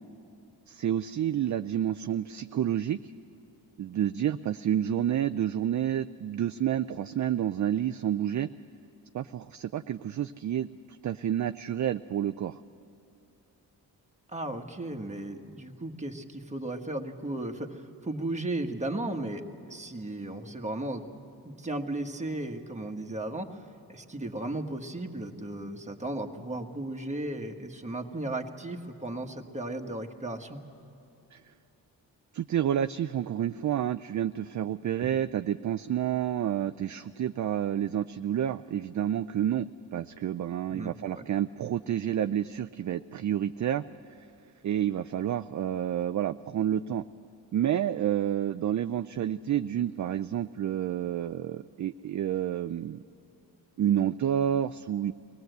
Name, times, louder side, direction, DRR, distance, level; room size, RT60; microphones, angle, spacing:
voice 1, 0.7-3.0 3.8-8.5 9.1-12.6 31.3-31.4 32.3-43.8 44.6-47.0 47.5-53.0 53.8-55.1, right 10 dB, 45° right, 10 dB, 0.5 m, -29 dB
voice 2, 14.3-19.4 19.7-21.0 21.4-23.6 23.9-30.6 35.0-35.1 40.7-41.3, right 1 dB, 15° right, 3 dB, 1.5 m, -35 dB
23.5 x 18.5 x 8.0 m, 2.8 s
cardioid pair, 90°, 40 cm